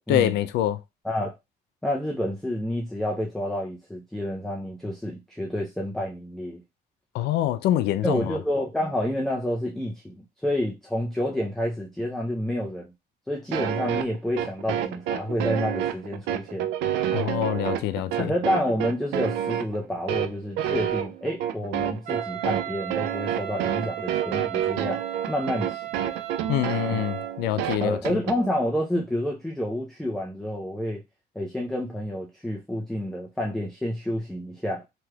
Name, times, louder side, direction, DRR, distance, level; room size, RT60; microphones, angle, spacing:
voice 1, 0.1-0.8 7.1-8.4 17.1-18.3 26.5-28.2, left 12 dB, 80° left, 0.4 m, -25 dB
voice 2, 1.8-6.6 8.0-12.9 13.3-16.7 18.2-26.0 26.9-27.0 27.8-31.0 31.4-34.8, left 1 dB, ahead, 0.5 m, -29 dB
sound 1, 13.5-28.4, right 10 dB, 90° right, 0.4 m, -28 dB
Wind instrument woodwind instrument, 22.0-27.4, right 13 dB, 45° right, 0.6 m, -36 dB
3.2 x 3.0 x 2.3 m
cardioid pair, 110°, 17 cm